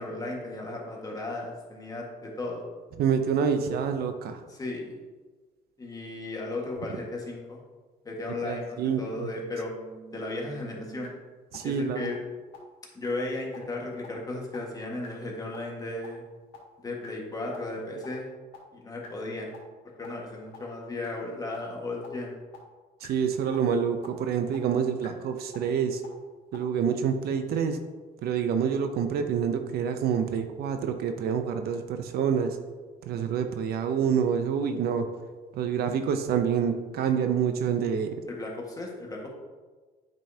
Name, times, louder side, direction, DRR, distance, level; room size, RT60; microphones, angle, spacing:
voice 1, 0.0-2.6 4.5-4.9 5.8-7.6 8.0-9.7 10.1-11.1 11.6-12.2 12.9-16.2 16.8-18.3 18.7-19.5 20.0-22.4 38.3-39.3, left 2 dB, 20° left, -2 dB, 1.6 m, -35 dB
voice 2, 3.0-4.4 8.4-9.3 11.5-12.1 23.0-26.0 26.5-27.8 28.2-32.6 33.1-35.1 35.5-38.1, right 7 dB, 65° right, 7 dB, 0.7 m, -27 dB
sound 1, 8.6-11.1 11.5-11.6 12.0-12.1 12.5-12.6 13.0-13.1 13.5-13.6 14.0-14.1 14.5-14.6 15.0-15.1 15.5-15.6 16.0-16.1 16.5-16.6 17.0-17.1 17.5-17.6 18.0-18.1 18.5-18.6 19.0-19.1 19.5-19.6 20.0-20.1 20.5-20.6 21.0-21.1 21.5-21.6 22.0-22.1 22.5-22.6 23.0-23.1 23.5-23.6 24.0-24.1 24.5-24.6 25.0-25.1 25.5-25.6 26.0-26.1 26.5-26.6, left 2 dB, 85° left, 1.8 m, -47 dB
8.9 x 5.3 x 2.8 m, 1.3 s
cardioid pair, 110°, 17 cm